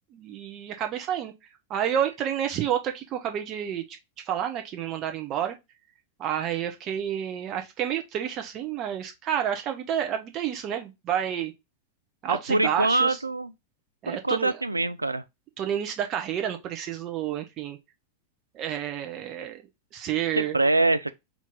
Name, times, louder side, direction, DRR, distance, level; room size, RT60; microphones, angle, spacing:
voice 1, 0.1-1.3 1.7-3.8 4.3-5.6 6.2-11.5 12.2-13.2 14.0-14.6 15.6-17.8 18.5-19.6 19.9-20.6, right 10 dB, 35° right, 0.8 m, -29 dB
voice 2, 12.3-13.5 14.1-15.2 20.4-21.1, right 2 dB, 85° right, 0.3 m, -24 dB
4.4 x 2.9 x 3.5 m
figure-of-eight pair, 90°, 0 cm